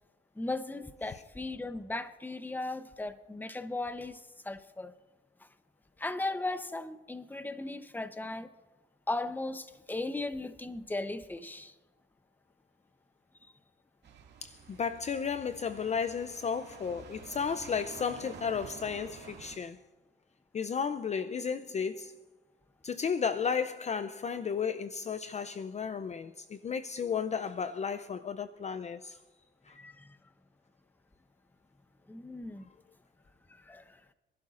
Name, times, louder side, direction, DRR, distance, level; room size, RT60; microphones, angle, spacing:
voice 1, 0.4-4.9 6.0-8.5 9.1-11.7 29.7-30.2 32.1-32.7 33.5-34.0, left 2 dB, 10° left, 0.8 m, -37 dB
sound 1, 14.0-19.6, right 6 dB, 60° right, 2.2 m, -50 dB
voice 2, 14.4-19.8 20.5-22.1 22.8-29.2 29.7-29.8, left 6 dB, 35° left, 0.5 m, -33 dB
26.5 x 12.0 x 2.5 m
cardioid pair, 90°, 20 cm